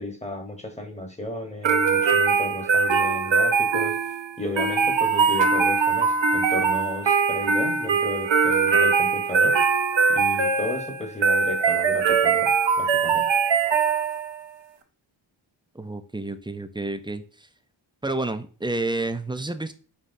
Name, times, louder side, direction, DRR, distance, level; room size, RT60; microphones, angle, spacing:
voice 1, 0.0-4.0 4.4-9.6 10.1-13.3, left 2 dB, 15° left, 1.0 m, -33 dB
sound 1, 1.6-14.4, right 5 dB, 65° right, 0.7 m, -21 dB
voice 2, 15.7-17.2 18.0-19.7, right 2 dB, 10° right, 0.4 m, -29 dB
5.5 x 3.1 x 2.6 m
wide cardioid pair, 40°, 48 cm